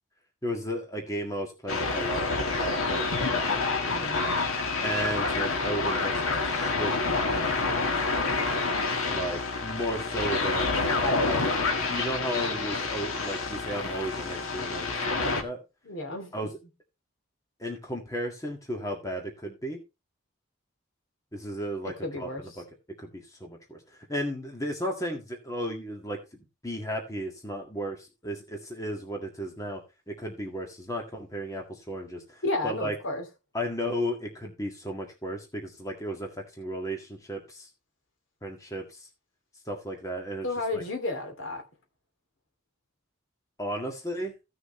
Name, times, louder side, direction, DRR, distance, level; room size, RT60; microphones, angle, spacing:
voice 1, 0.4-3.7 4.8-7.8 9.1-11.6 11.9-15.6 16.3-16.5 17.6-19.8 21.3-22.5 23.0-23.8 24.1-26.2 26.6-32.9 33.5-37.7 38.4-39.1 39.7-40.5 40.7-40.8 43.6-44.3, equal, 15° left, 1.8 m, -34 dB
sound 1, 1.7-15.4, left 3 dB, 90° left, 1.7 m, -28 dB
voice 2, 3.9-4.2 15.8-16.3 22.0-22.4 32.4-33.3 40.4-41.6, left 2 dB, 70° left, 2.5 m, -32 dB
15.5 x 6.4 x 3.1 m
head